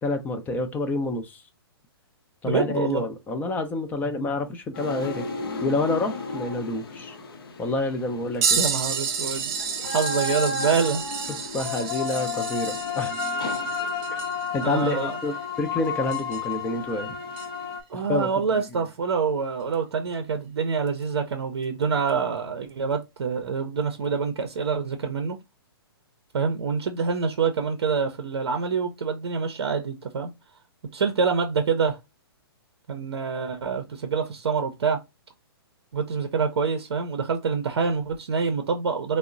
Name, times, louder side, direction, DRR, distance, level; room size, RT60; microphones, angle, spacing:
voice 1, 0.0-1.4 2.4-5.3 5.6-7.2 7.6-8.6 11.5-13.1 14.5-17.2 17.9-18.3, left 2 dB, 15° left, 0.4 m, -28 dB
voice 2, 2.4-3.0 8.6-9.5 9.9-11.0 14.6-15.2 17.9-25.4 26.3-30.3 30.9-32.0 32.9-35.0 35.9-39.2, right 5 dB, 75° right, 0.5 m, -26 dB
sound 1, 4.7-8.5 8.7-17.8, left 5 dB, 60° left, 0.6 m, -32 dB
sound 2, 8.4-16.6 17.3-17.5 19.7-19.8 20.9-21.0 22.1-22.2, right 6 dB, 40° right, 0.7 m, -31 dB
3.5 x 2.0 x 2.4 m
hypercardioid pair, 125°, 13 cm